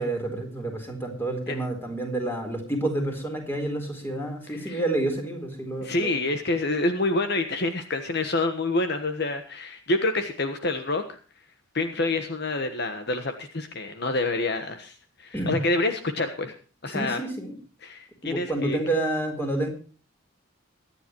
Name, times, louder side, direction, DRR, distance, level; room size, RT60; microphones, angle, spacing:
voice 1, 0.0-6.3 15.3-15.6 16.9-17.5 18.2-19.7, right 2 dB, 10° left, 3 dB, 4.0 m, -29 dB
voice 2, 5.8-11.0 11.7-16.5 16.8-17.2 17.8-18.8, left 2 dB, 55° left, 7 dB, 1.3 m, -27 dB
23.5 x 10.5 x 3.1 m, 0.38 s
head